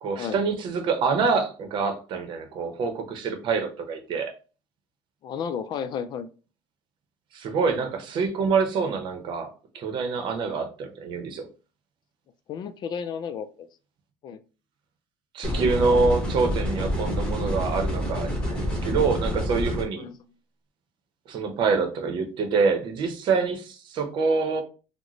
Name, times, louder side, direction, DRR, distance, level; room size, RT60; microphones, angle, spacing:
voice 1, 0.0-4.3 7.3-9.5 9.7-11.5 15.3-20.1 21.3-24.6, right 4 dB, 55° right, 6 dB, 0.8 m, -26 dB
voice 2, 5.2-6.3 12.5-13.7 14.2-14.4 20.0-20.1, left 7 dB, 50° left, 11 dB, 0.4 m, -32 dB
sound 1, 15.4-19.8, equal, 10° left, 1.5 m, -27 dB
3.6 x 2.1 x 3.0 m, 0.34 s
supercardioid pair, 95°, 10 cm